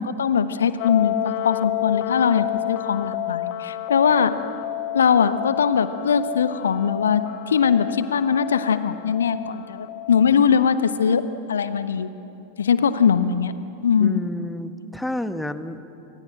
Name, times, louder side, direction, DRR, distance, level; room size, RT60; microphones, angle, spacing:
voice 1, 0.0-4.3 4.9-7.2 7.5-12.1 12.6-13.5 13.8-14.2, left 7 dB, 65° left, 12 dB, 1.1 m, -21 dB
sound 1, 0.8-10.5, left 14 dB, 45° left, 0.7 m, -30 dB
voice 2, 14.0-15.8, left 1 dB, 5° left, 11 dB, 1.1 m, -30 dB
28.0 x 25.0 x 7.6 m, 2.9 s
figure-of-eight pair, 90°, 0 cm